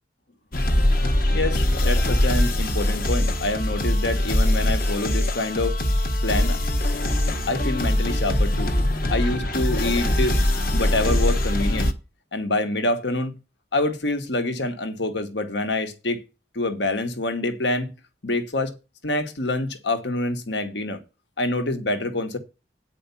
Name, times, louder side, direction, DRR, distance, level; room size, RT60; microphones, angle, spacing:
sound 1, 0.5-11.9, left 1 dB, 50° left, 1.2 m, -22 dB
voice 1, 1.3-5.8 6.2-6.6 7.5-8.7 9.1-10.4 10.7-11.9 12.3-13.4 13.7-16.2 16.5-17.9 18.2-18.8 19.0-21.0 21.4-22.4, left 2 dB, 75° left, 1.4 m, -26 dB
9.5 x 5.2 x 7.0 m
head